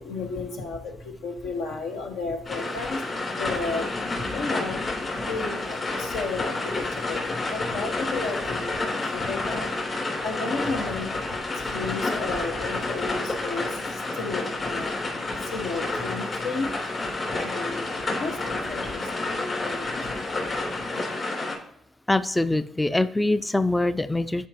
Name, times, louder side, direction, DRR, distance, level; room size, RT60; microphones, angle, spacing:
voice 1, 0.0-3.0 3.3-4.9 5.3-17.0 17.3-20.8, left 3 dB, 90° left, 2 dB, 1.5 m, -33 dB
sound 1, 2.4-21.5, left 2 dB, 40° left, 3.5 m, -30 dB
voice 2, 22.1-24.5, left 2 dB, 10° left, 12 dB, 0.3 m, -24 dB
11.5 x 5.1 x 2.9 m, 0.72 s
cardioid pair, 90°, 0 cm